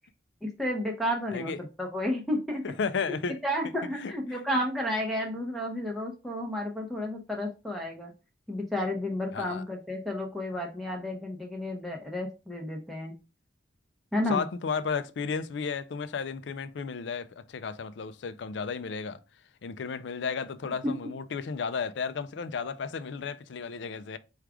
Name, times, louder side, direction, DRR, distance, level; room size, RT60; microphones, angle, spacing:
voice 1, 0.4-2.6 3.4-8.1 8.5-13.1 14.1-14.4 20.8-20.9, left 1 dB, ahead, 0.7 m, -31 dB
voice 2, 2.6-3.4 3.9-4.4 9.3-9.6 14.3-19.2 19.6-24.2, left 5 dB, 65° left, 0.4 m, -33 dB
4.7 x 2.4 x 4.8 m
head